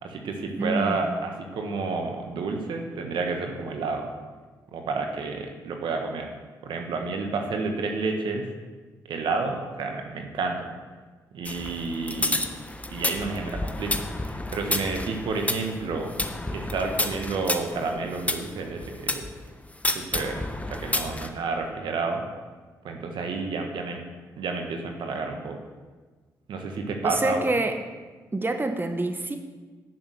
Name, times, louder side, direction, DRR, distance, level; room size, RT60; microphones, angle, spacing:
voice 1, 0.0-4.1 4.7-6.3 6.6-8.5 9.0-10.7 11.3-12.4 12.9-16.1 16.5-19.2 19.9-22.2 22.8-24.0 24.4-25.6 26.5-27.5, right 4 dB, 70° right, 3 dB, 1.4 m, -30 dB
voice 2, 0.6-1.2 27.0-27.8 28.3-29.4, right 2 dB, 25° right, 6 dB, 1.1 m, -27 dB
sound 1, 11.4-19.3 19.8-21.3, left 2 dB, 15° left, 1.2 m, -30 dB
10.5 x 6.6 x 6.4 m, 1.4 s
hypercardioid pair, 45°, 8 cm